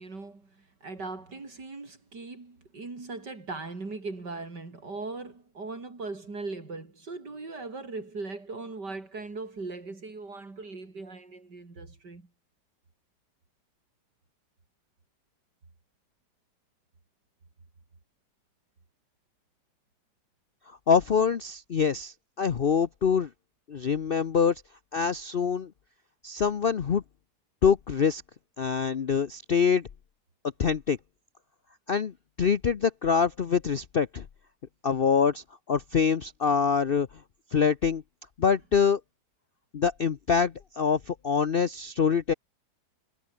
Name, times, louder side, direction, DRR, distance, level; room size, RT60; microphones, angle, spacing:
voice 1, 0.0-12.3, right 3 dB, 85° right, 5.0 m, -39 dB
voice 2, 20.9-23.3 23.7-24.6 24.9-25.7 26.2-27.0 27.6-28.2 28.6-29.9 30.6-31.0 31.9-34.3 34.8-37.1 37.5-38.0 38.4-39.0 39.7-42.3, left 6 dB, 45° left, 0.8 m, -25 dB
omnidirectional pair, 1.8 m